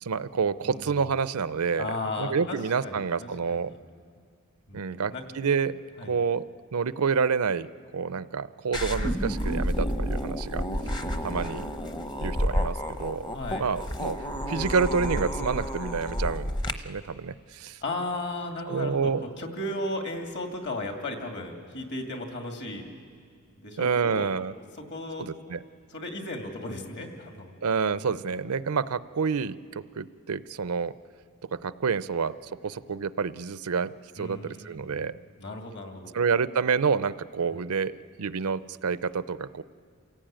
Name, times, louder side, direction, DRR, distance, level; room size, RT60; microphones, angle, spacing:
voice 1, 0.0-3.7 4.7-6.4 6.7-7.7 7.9-10.7 11.2-11.7 12.2-13.3 13.6-14.2 14.4-17.8 18.7-19.2 23.8-24.5 25.2-25.6 27.6-30.9 31.5-32.3 32.6-35.2 36.1-37.9 38.2-39.6, right 5 dB, 80° right, 15 dB, 0.6 m, -28 dB
voice 2, 1.8-3.8 4.7-5.2 6.0-6.1 11.0-11.3 13.3-13.7 17.8-22.9 23.6-24.3 24.8-25.3 25.9-27.5 28.0-28.3 34.2-36.2 37.5-37.6, left 2 dB, 50° left, 3 dB, 2.6 m, -36 dB
sound 1, 8.7-16.7, equal, 20° left, 0.9 m, -30 dB
28.0 x 17.0 x 8.9 m, 2.1 s
head